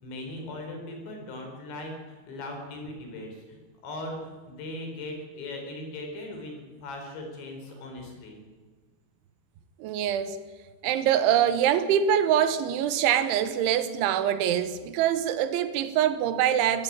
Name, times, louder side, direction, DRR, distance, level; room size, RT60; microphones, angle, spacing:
voice 1, 0.0-8.4, left 1 dB, 70° left, 6.5 m, -39 dB
voice 2, 9.8-10.4 10.8-16.8, right 10 dB, 85° right, 3.5 m, -24 dB
20.5 x 15.5 x 8.9 m
omnidirectional pair, 5.4 m